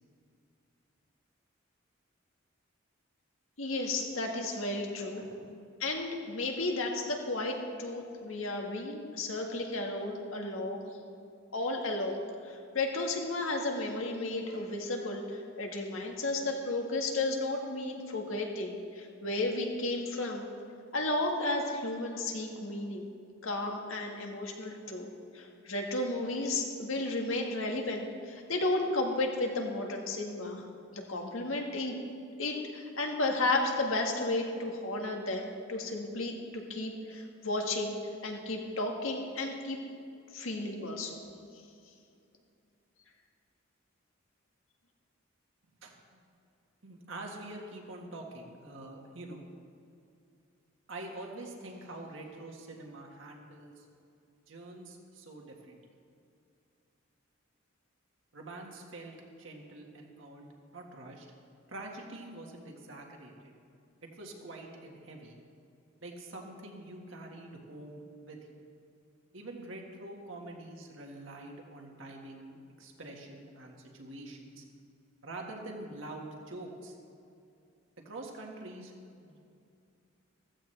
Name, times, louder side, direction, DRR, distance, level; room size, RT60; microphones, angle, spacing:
voice 1, 3.6-5.2 5.8-10.9 11.5-20.5 20.9-23.1 23.4-25.1 25.3-30.6 30.9-31.9 32.4-37.9 38.2-39.8 40.3-41.2, left 2 dB, 90° left, 1 dB, 1.7 m, -33 dB
voice 2, 5.0-5.6 45.8-46.2 46.8-49.4 50.9-53.9 54.5-55.8 58.3-61.3 61.7-63.5 64.2-65.4 66.0-68.4 69.3-74.6 75.2-76.9 78.0-78.9 79.2-79.4, right 2 dB, 70° right, 1 dB, 1.8 m, -45 dB
15.0 x 14.5 x 3.4 m, 2.5 s
head